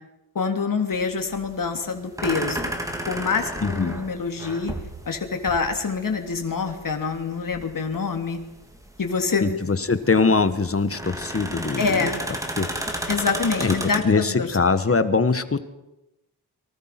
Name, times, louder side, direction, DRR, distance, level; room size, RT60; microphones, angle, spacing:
voice 1, 0.3-2.7 3.1-4.7 5.1-8.4 9.0-9.6 11.8-12.2 13.1-14.5, left 5 dB, 55° left, 5 dB, 3.2 m, -26 dB
sound 1, 0.9-14.0, right 1 dB, 10° right, 3.1 m, -33 dB
voice 2, 3.6-4.0 9.4-12.1 12.6-12.7 13.6-15.6, left 4 dB, 35° left, 11 dB, 1.5 m, -22 dB
30.0 x 24.5 x 6.0 m, 0.95 s
wide cardioid pair, 170°, 40 cm